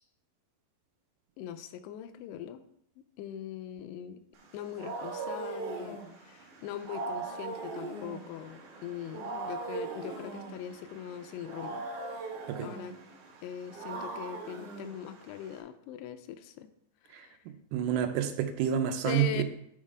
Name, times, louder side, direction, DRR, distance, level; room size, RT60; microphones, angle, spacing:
voice 1, 1.4-2.6 3.2-4.2 4.5-11.8 12.6-13.0 13.4-16.7 17.0-17.4 19.1-19.4, left 10 dB, 90° left, 9 dB, 2.7 m, -41 dB
Wild animals, 4.4-15.6, right 3 dB, 60° right, 2.4 m, -40 dB
voice 2, 17.7-19.4, right 9 dB, 80° right, 7 dB, 2.5 m, -28 dB
9.8 x 3.7 x 4.8 m, 0.73 s
omnidirectional pair, 4.7 m